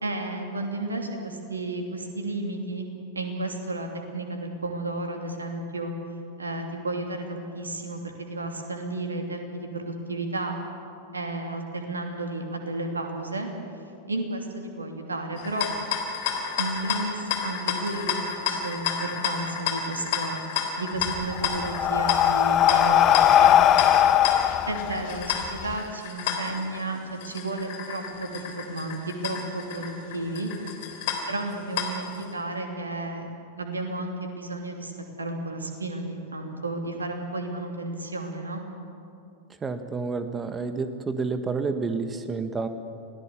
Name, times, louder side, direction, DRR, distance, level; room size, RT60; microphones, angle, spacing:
voice 1, 0.0-5.9 6.4-10.6 11.1-13.5 14.1-15.7 16.6-20.4 20.8-23.6 24.7-30.5 31.3-33.3 33.6-34.9 35.2-38.6, right 2 dB, 75° right, 3 dB, 2.8 m, -32 dB
sound 1, 15.4-32.2, left 7 dB, 50° left, 3.3 m, -31 dB
Breathing, 21.0-25.7, left 11 dB, 30° left, 0.6 m, -20 dB
voice 2, 39.6-42.7, right 4 dB, 20° right, 9 dB, 1.7 m, -29 dB
26.5 x 18.0 x 7.1 m, 2.6 s
figure-of-eight pair, 90°, 0 cm